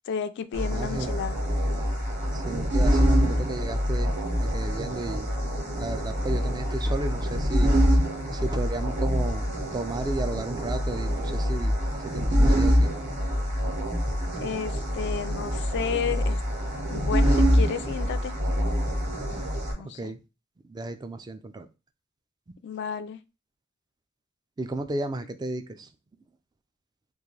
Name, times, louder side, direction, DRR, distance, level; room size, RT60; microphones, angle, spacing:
voice 1, 0.1-1.4 14.4-16.4 16.9-18.3 19.8-20.1 22.6-23.2, left 7 dB, 55° left, 0.3 m, -32 dB
sound 1, 0.5-19.7, equal, 35° right, 1.2 m, -25 dB
voice 2, 0.7-1.1 2.3-4.1 4.4-5.3 5.8-7.7 8.3-9.4 9.7-11.7 12.0-12.9 14.5-14.8 19.5-20.2 20.6-21.7 24.6-25.9, right 2 dB, 20° right, 0.3 m, -33 dB
3.7 x 2.5 x 3.1 m
head